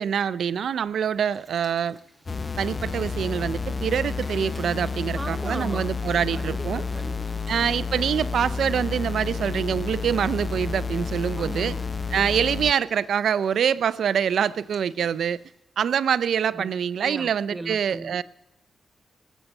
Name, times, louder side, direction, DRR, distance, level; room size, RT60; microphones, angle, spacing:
voice 1, 0.0-2.0 2.6-6.8 7.5-11.8 12.1-15.4 15.8-18.2, right 8 dB, 80° right, 0.4 m, -25 dB
Boiling, 1.1-15.6, right 1 dB, ahead, 1.9 m, -54 dB
sound 1, 2.3-12.7, left 4 dB, 40° left, 0.5 m, -30 dB
voice 2, 5.1-5.9 6.3-7.4 11.4-11.9 16.5-16.7 17.0-18.2, right 2 dB, 20° right, 1.2 m, -38 dB
Wind instrument woodwind instrument, 9.9-11.5 11.9-15.3, left 2 dB, 90° left, 2.5 m, -57 dB
19.0 x 8.2 x 5.3 m
cardioid pair, 65°, 0 cm